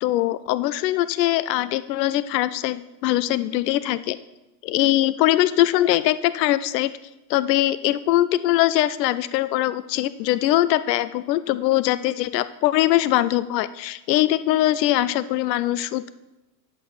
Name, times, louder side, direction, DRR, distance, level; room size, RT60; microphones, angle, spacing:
voice 1, 0.0-4.2 4.6-6.9 7.3-16.1, left 14 dB, 75° left, 15 dB, 0.6 m, -22 dB
9.0 x 7.6 x 5.6 m, 0.99 s
supercardioid pair, 170°, 50 cm